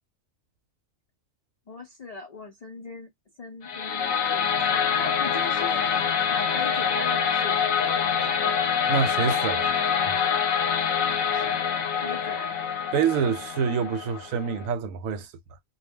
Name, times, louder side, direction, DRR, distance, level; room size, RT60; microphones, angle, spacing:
voice 1, 1.7-3.1 3.4-8.6 11.3-11.5 12.0-12.6, left 4 dB, 70° left, 0.3 m, -40 dB
sound 1, 3.6-14.7, left 7 dB, 90° left, 1.1 m, -25 dB
voice 2, 8.9-9.7 12.9-15.3, right 6 dB, 90° right, 1.0 m, -26 dB
2.3 x 2.2 x 3.4 m
omnidirectional pair, 1.4 m